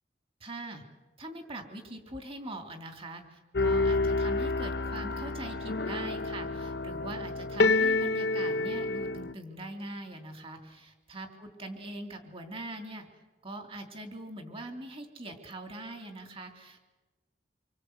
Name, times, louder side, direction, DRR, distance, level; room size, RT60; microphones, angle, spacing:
voice 1, 0.4-0.8 1.2-13.1 13.4-16.8, right 1 dB, 35° right, 4 dB, 3.3 m, -42 dB
sound 1, 3.5-9.3, left 3 dB, 70° left, 0.8 m, -28 dB
25.5 x 24.5 x 8.2 m, 1.2 s
head